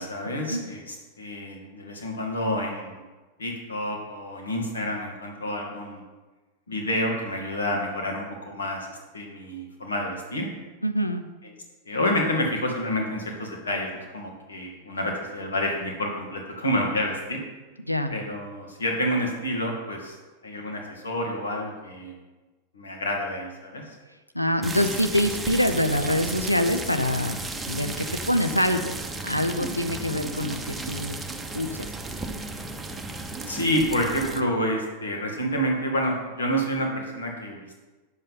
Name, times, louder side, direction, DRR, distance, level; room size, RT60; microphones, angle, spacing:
voice 1, 0.0-3.0 3.4-6.0 6.7-10.5 11.9-17.4 18.1-20.2 20.4-22.1 22.7-24.0 33.5-37.7, equal, 70° left, 0 dB, 2.3 m, -28 dB
voice 2, 10.8-11.2 17.8-18.1 24.3-28.9 29.2-31.2 31.5-31.9, left 1 dB, 90° left, 8 dB, 0.8 m, -25 dB
sound 1, 24.6-34.4, right 3 dB, 10° right, 1.0 m, -34 dB
9.5 x 7.6 x 5.6 m, 1.2 s
figure-of-eight pair, 90°, 0 cm